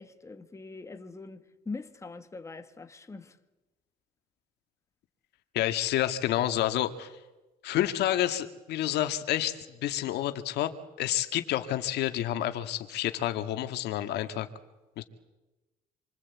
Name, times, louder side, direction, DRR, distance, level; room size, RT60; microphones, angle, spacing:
voice 1, 0.0-3.4, left 3 dB, 15° left, 1.8 m, -42 dB
voice 2, 5.5-7.1 7.6-10.7 11.0-14.5 15.0-15.1, left 13 dB, 80° left, 2.0 m, -29 dB
27.0 x 24.5 x 8.5 m
cardioid pair, 110°, 17 cm